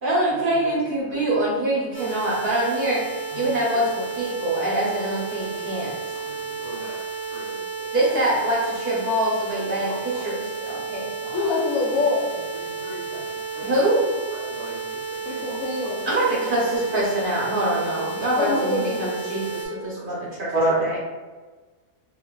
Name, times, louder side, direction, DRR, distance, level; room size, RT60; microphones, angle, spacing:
voice 1, 0.0-3.0 3.3-6.2 7.9-11.4 13.6-14.1 16.0-20.5 20.8-21.0, right 1 dB, 45° right, -6 dB, 0.8 m, -24 dB
sound 1, 1.9-19.7, right 4 dB, 35° left, 0.9 m, -32 dB
voice 2, 6.6-7.0 7.3-7.9 9.9-10.0 11.4-11.5 12.8-13.7 14.4-14.8 15.2-15.6 17.7-17.8 18.5-18.6 20.0-20.1 20.5-20.8, right 1 dB, 70° right, -7 dB, 0.3 m, -30 dB
voice 3, 11.3-12.4 15.2-16.0 18.4-19.3, left 3 dB, 85° left, -1 dB, 1.1 m, -25 dB
3.1 x 2.4 x 2.2 m, 1.3 s
omnidirectional pair, 1.5 m